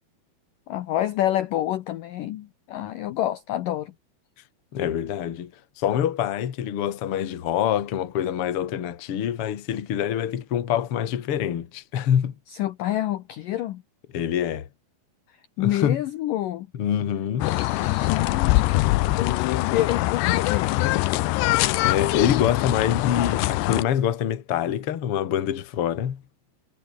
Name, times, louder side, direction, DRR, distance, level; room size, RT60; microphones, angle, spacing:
voice 1, 0.7-3.9 12.5-13.8 15.6-16.7 17.4-18.9 19.2-20.7, left 13 dB, 70° left, 2.2 m, -28 dB
voice 2, 4.7-5.5 5.8-12.3 14.1-14.7 15.6-16.0 16.8-17.5 21.8-26.2, left 9 dB, 45° left, 2.0 m, -25 dB
sound 1, 17.4-23.8, left 18 dB, 90° left, 3.0 m, -23 dB
omnidirectional pair, 4.8 m